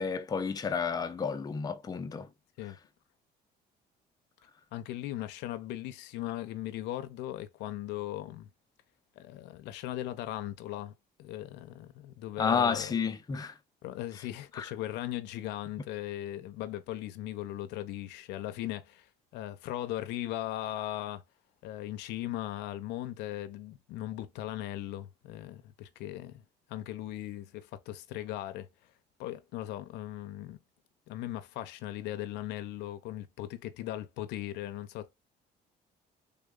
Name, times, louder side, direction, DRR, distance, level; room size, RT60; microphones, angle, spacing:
voice 1, 0.0-2.3 12.4-13.6 14.6-14.7, left 6 dB, 20° left, 0.5 m, -31 dB
voice 2, 4.7-8.5 9.2-10.9 11.2-13.0 13.8-21.2 21.6-26.4 26.7-28.7 29.2-30.6 31.1-35.1, left 14 dB, 85° left, 0.5 m, -38 dB
3.4 x 2.2 x 3.6 m
cardioid pair, 110°, 17 cm